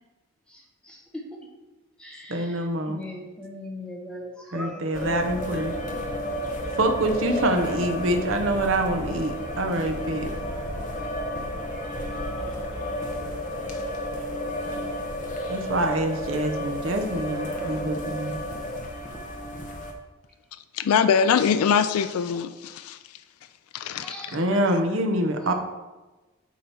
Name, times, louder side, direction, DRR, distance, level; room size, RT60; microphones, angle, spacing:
voice 1, 0.5-1.4 2.0-2.6 2.9-5.0 10.5-10.9 11.7-12.7 18.7-18.8 24.0-24.5 25.4-25.5, left 1 dB, 5° left, 0 dB, 0.8 m, -41 dB
voice 2, 2.3-3.0 4.5-5.8 6.8-10.3 15.5-18.4 24.3-25.5, right 1 dB, 60° right, 5 dB, 0.8 m, -25 dB
sound 1, 4.9-19.9, equal, 40° left, 0.9 m, -32 dB
voice 3, 20.7-23.2 23.7-24.4, left 7 dB, 85° left, 11 dB, 0.3 m, -23 dB
8.4 x 3.0 x 5.6 m, 1.2 s
head